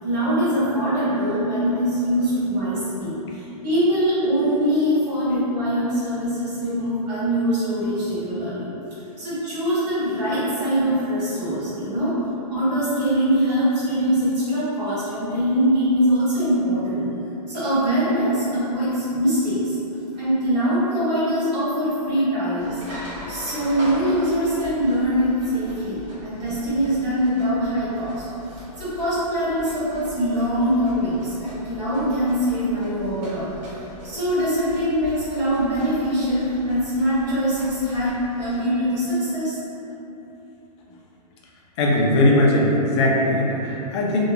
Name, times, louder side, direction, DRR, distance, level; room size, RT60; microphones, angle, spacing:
voice 1, 0.0-8.7 9.2-12.2 12.5-17.0 17.5-19.8 20.1-22.8 23.3-33.5 34.0-39.6, equal, 80° right, -12 dB, 1.3 m, -23 dB
sound 1, 22.6-38.6, equal, 50° right, 0.9 m, -40 dB
voice 2, 41.8-44.3, left 1 dB, 40° left, -3 dB, 0.5 m, -19 dB
2.8 x 2.3 x 2.4 m, 3.0 s
hypercardioid pair, 150°, 21 cm